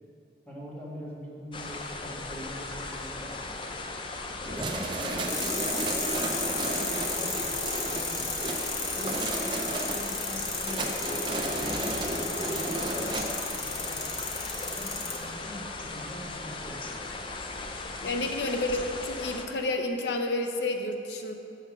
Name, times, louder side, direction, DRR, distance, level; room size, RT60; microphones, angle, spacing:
voice 1, 0.5-3.6 4.5-8.3 8.9-11.2 11.4-14.2 14.6-17.0, equal, 5° left, -8 dB, 1.7 m, -43 dB
sound 1, 1.5-19.5, left 3 dB, 30° left, 0.5 m, -38 dB
sound 2, 4.4-13.2, right 2 dB, 25° right, 0.6 m, -34 dB
sound 3, 5.3-15.2, left 3 dB, 45° left, 1.2 m, -34 dB
voice 2, 18.0-21.3, left 2 dB, 70° left, 4 dB, 0.7 m, -30 dB
7.0 x 5.7 x 6.0 m, 2.7 s
head